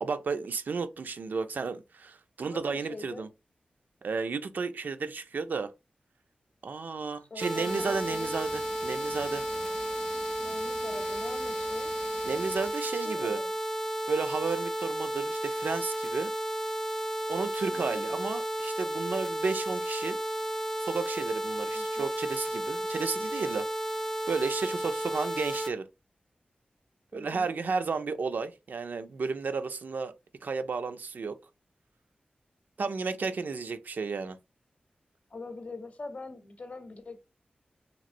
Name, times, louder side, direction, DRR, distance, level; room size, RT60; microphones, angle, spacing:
voice 1, 0.0-3.3 4.0-5.7 6.6-9.5 12.3-13.4 14.1-16.3 17.3-20.2 20.8-23.7 24.3-25.8 27.1-30.1 30.4-31.4 32.8-34.4, right 4 dB, 70° right, 0.4 m, -33 dB
voice 2, 2.4-3.3 7.3-8.3 8.6-8.7 10.4-11.9 12.8-13.5 17.7-18.2 21.7-22.1 27.1-27.5 35.3-37.2, left 3 dB, 45° left, 0.7 m, -44 dB
sound 1, 7.4-25.7, right 1 dB, 10° left, 0.4 m, -33 dB
sound 2, 7.6-12.7, left 4 dB, 85° left, 0.4 m, -47 dB
3.0 x 2.9 x 2.5 m
wide cardioid pair, 110°, 3 cm